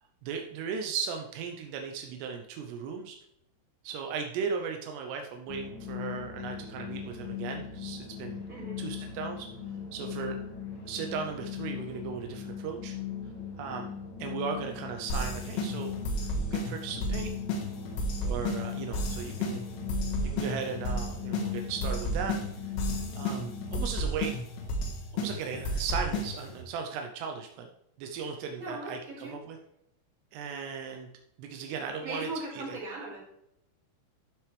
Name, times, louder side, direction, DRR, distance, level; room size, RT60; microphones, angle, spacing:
voice 1, 0.2-3.2 3.8-8.4 8.8-9.5 9.9-10.4 10.9-13.0 13.6-13.9 14.2-17.4 18.2-19.7 20.2-22.7 23.1-24.4 25.1-27.7 28.0-29.6 30.3-31.1 31.4-32.8, right 6 dB, 85° right, 3 dB, 2.4 m, -37 dB
sound 1, 5.5-24.0, left 8 dB, 55° left, 3.0 m, -39 dB
voice 2, 8.5-8.8 28.6-29.3 32.0-33.2, right 2 dB, 30° right, -6 dB, 4.4 m, -38 dB
sound 2, 15.1-26.6, equal, 75° left, 4.0 m, -33 dB
11.5 x 7.9 x 3.3 m, 0.79 s
omnidirectional pair, 5.8 m